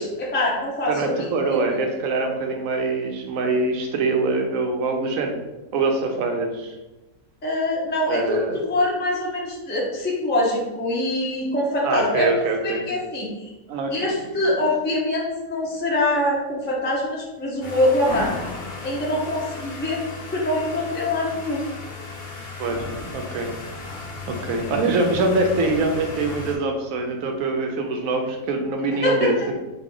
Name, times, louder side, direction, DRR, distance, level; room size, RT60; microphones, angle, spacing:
voice 1, 0.0-1.6 7.4-12.3 12.6-13.3 13.9-18.4 18.8-20.0 20.3-21.7 29.0-29.3, left 1 dB, 15° left, -4 dB, 0.3 m, -24 dB
voice 2, 0.9-5.4 5.7-6.8 8.1-8.6 11.8-12.9 13.7-14.1 22.6-22.9 23.1-23.5 24.3-29.5, right 3 dB, 65° right, 3 dB, 0.9 m, -24 dB
sound 1, 17.6-26.6, left 3 dB, 50° left, 0.8 m, -35 dB
3.9 x 2.5 x 3.7 m, 1.0 s
omnidirectional pair, 1.7 m